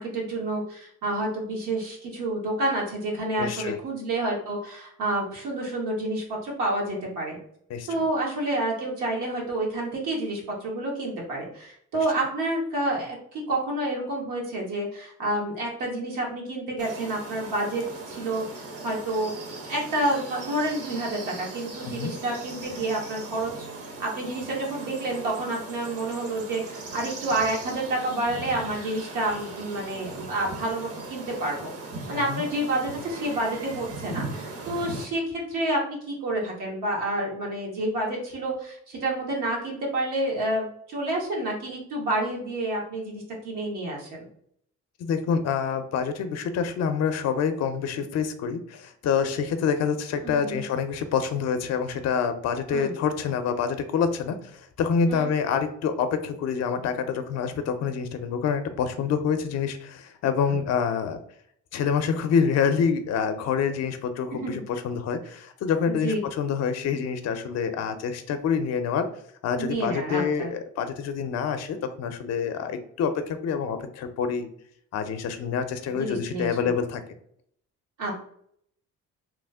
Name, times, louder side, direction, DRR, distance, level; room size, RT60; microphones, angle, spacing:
voice 1, 0.0-7.4 7.9-23.7 24.0-31.7 32.1-44.3 50.2-50.6 52.7-52.9 55.1-55.3 60.5-60.6 64.4-64.5 66.0-66.2 69.6-70.5 76.0-76.5 78.0-78.2, right 1 dB, 85° right, -2 dB, 1.2 m, -29 dB
voice 2, 3.4-3.8 7.7-7.9 21.8-22.1 32.1-32.4 45.0-61.2 61.7-69.1 69.4-74.5 74.9-77.0, left 6 dB, 60° left, 9 dB, 0.5 m, -27 dB
sound 1, 16.8-35.1, right 3 dB, 50° right, 0.8 m, -39 dB
3.0 x 2.0 x 3.4 m, 0.67 s
cardioid pair, 90°, 30 cm